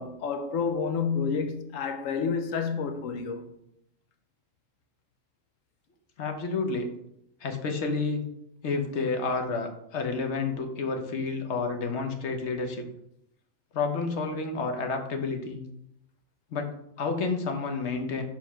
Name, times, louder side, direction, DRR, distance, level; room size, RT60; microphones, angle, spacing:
voice 1, 0.0-3.5, left 5 dB, 80° left, 1.1 m, -29 dB
voice 2, 6.2-6.9 7.4-8.3 8.6-12.8 13.7-15.6 16.5-18.2, left 4 dB, 60° left, 1.1 m, -30 dB
5.0 x 3.7 x 5.8 m
omnidirectional pair, 1.4 m